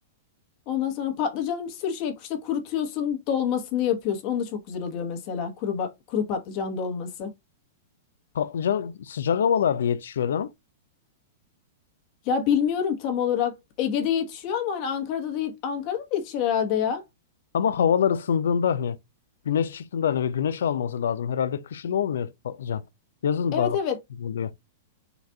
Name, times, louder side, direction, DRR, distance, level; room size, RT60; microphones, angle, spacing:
voice 1, 0.7-7.3 12.2-13.5 13.8-17.0 23.5-24.0, left 8 dB, 40° left, 1.1 m, -27 dB
voice 2, 8.3-10.5 17.5-19.0 19.4-22.8 23.2-23.8 24.2-24.5, left 8 dB, 85° left, 0.5 m, -25 dB
4.0 x 2.4 x 4.5 m
supercardioid pair, 155°, 0 cm